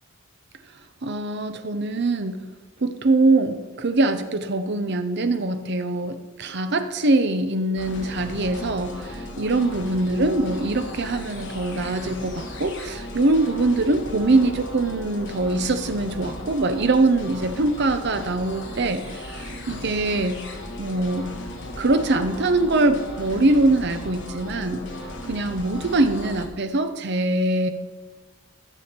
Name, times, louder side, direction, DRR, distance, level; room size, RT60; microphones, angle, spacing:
voice 1, 1.0-2.4 2.8-20.4 20.8-21.3 21.8-24.9 25.3-27.7, right 2 dB, 55° right, 9 dB, 0.8 m, -23 dB
sound 1, 7.8-26.5, left 1 dB, 55° left, 1.6 m, -36 dB
13.5 x 7.0 x 4.5 m, 1.4 s
head